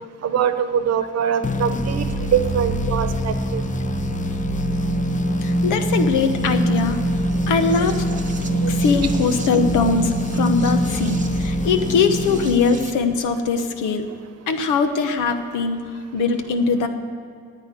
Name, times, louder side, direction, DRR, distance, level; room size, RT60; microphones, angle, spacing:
voice 1, 0.2-3.6 8.6-8.7, right 8 dB, 55° right, 10 dB, 1.0 m, -23 dB
sound 1, 1.4-13.2, left 4 dB, 25° left, 0.6 m, -28 dB
sound 2, 1.8-12.9, right 2 dB, 25° right, 1.1 m, -25 dB
voice 2, 5.4-7.0 7.5-8.1 8.7-14.1 14.5-15.8 16.1-16.9, left 5 dB, 85° left, 7 dB, 1.2 m, -21 dB
10.5 x 8.9 x 9.3 m, 2.4 s
cardioid pair, 90°, 30 cm